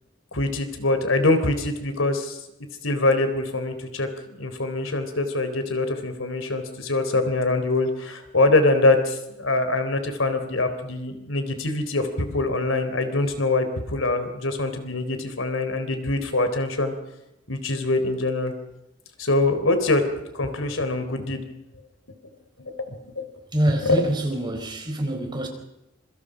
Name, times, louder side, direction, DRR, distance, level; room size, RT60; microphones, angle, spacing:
voice 1, 0.3-2.4 2.8-16.9 17.5-18.5 19.2-21.4 22.6-23.3 23.8-24.0, left 2 dB, 90° left, 3.8 m, -24 dB
voice 2, 23.5-25.5, right 1 dB, 20° right, 4.4 m, -25 dB
26.5 x 25.0 x 5.1 m
head